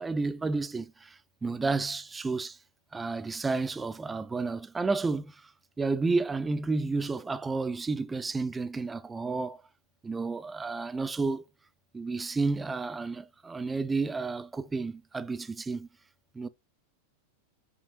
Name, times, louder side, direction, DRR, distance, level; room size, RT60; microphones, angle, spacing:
voice 1, 0.0-2.6 2.9-5.5 5.8-9.6 10.0-11.4 11.9-15.9 16.3-16.5, right 3 dB, 10° right, 0.4 m, -31 dB
5.8 x 3.0 x 2.5 m
figure-of-eight pair, 90°, 0 cm